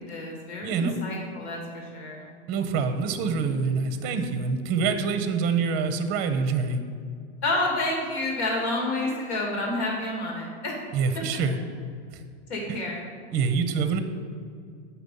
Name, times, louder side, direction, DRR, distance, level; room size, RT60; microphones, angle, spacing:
voice 1, 0.0-2.3 7.4-10.8 12.5-13.1, left 2 dB, 80° left, -1 dB, 2.2 m, -29 dB
voice 2, 0.6-1.0 2.5-6.8 10.9-11.5 12.7-12.8 13.3-14.0, right 5 dB, 30° right, 8 dB, 0.6 m, -26 dB
7.9 x 5.9 x 5.4 m, 2.2 s
supercardioid pair, 150°, 33 cm